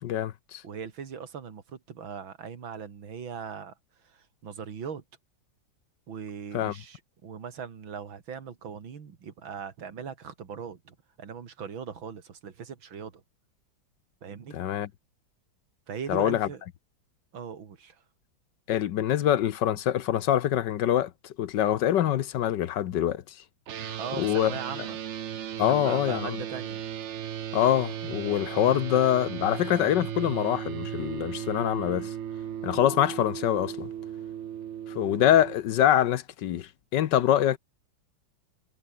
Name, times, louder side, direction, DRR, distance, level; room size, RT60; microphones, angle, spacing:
voice 1, 0.0-0.6 6.5-6.7 14.5-14.9 16.1-16.5 18.7-23.4 23.8-24.5 25.6-26.4 27.5-32.1 32.6-33.9 34.9-37.6, left 11 dB, 65° left, 1.4 m, -25 dB
voice 2, 0.6-5.0 6.1-13.2 14.2-14.6 15.9-16.6 17.3-18.0 24.0-25.0 25.7-26.8, right 6 dB, 85° right, 2.9 m, -40 dB
sound 1, 23.7-35.5, right 10 dB, 65° right, 0.7 m, -36 dB
omnidirectional pair, 2.1 m